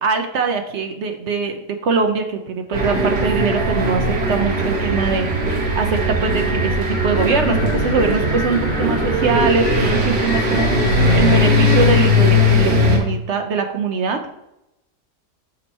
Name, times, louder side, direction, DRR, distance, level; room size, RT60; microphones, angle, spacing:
voice 1, 0.0-5.4 5.7-14.3, right 4 dB, 60° right, 5 dB, 0.8 m, -22 dB
sound 1, 2.7-13.0, left 1 dB, 75° right, 1.8 m, -18 dB
sound 2, 6.9-12.1, left 6 dB, 65° left, 1.1 m, -32 dB
5.3 x 4.2 x 5.5 m, 0.87 s
omnidirectional pair, 1.7 m